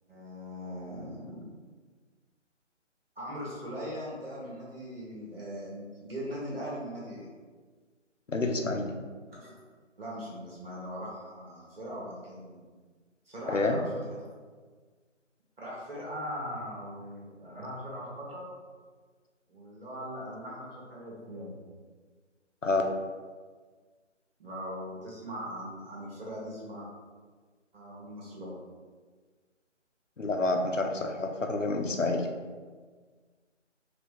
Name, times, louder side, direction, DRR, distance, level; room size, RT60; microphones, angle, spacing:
voice 1, 0.1-1.4 3.1-7.3 9.3-9.6 10.0-12.6 13.2-13.8 14.1-14.3 15.6-18.5 19.5-21.6 24.4-26.9 27.7-28.6, equal, 50° right, -6 dB, 1.4 m, -40 dB
voice 2, 8.3-8.9 13.5-13.8 22.6-22.8 30.2-32.3, left 2 dB, 85° left, 4 dB, 0.8 m, -28 dB
3.6 x 3.4 x 3.8 m, 1.5 s
figure-of-eight pair, 155°, 37 cm